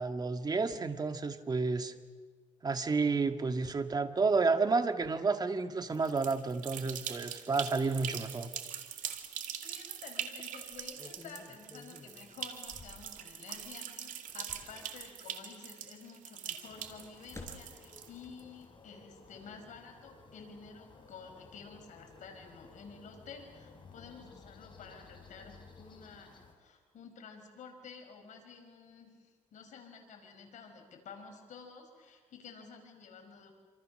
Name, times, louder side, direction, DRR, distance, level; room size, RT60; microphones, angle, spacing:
voice 1, 0.0-1.9 2.6-8.5, right 4 dB, 30° right, 7 dB, 1.9 m, -31 dB
sound 1, 5.9-18.4, right 9 dB, 80° right, 2.5 m, -43 dB
sound 2, 9.0-9.2 9.6-9.7 10.6-13.7 14.1-15.4 16.2-18.4 18.7-18.8, left 2 dB, 20° left, 5.9 m, -53 dB
voice 2, 9.6-33.5, left 5 dB, 70° left, 4 dB, 5.7 m, -51 dB
sound 3, 16.7-26.5, left 3 dB, 40° left, 5.1 m, -56 dB
28.0 x 26.5 x 6.6 m, 1.5 s
cardioid pair, 110°, 13 cm